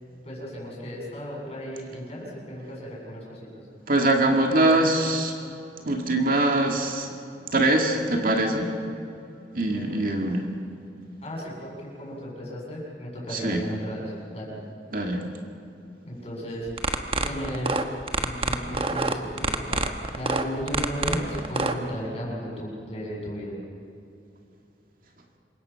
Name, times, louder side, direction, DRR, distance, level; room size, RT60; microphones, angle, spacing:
voice 1, 0.2-3.5 9.7-10.0 11.2-14.0 14.3-14.5 16.0-16.7 17.2-17.8 18.2-19.8 20.1-23.5, equal, 35° left, -3 dB, 7.7 m, -34 dB
voice 2, 3.9-5.4 5.8-7.2 7.5-8.7 9.5-10.5 13.3-13.7 14.9-15.2, right 2 dB, 50° right, 2 dB, 2.2 m, -23 dB
sound 1, 16.7-21.7, right 3 dB, 30° right, 1.2 m, -26 dB
27.5 x 24.0 x 5.8 m, 2.6 s
head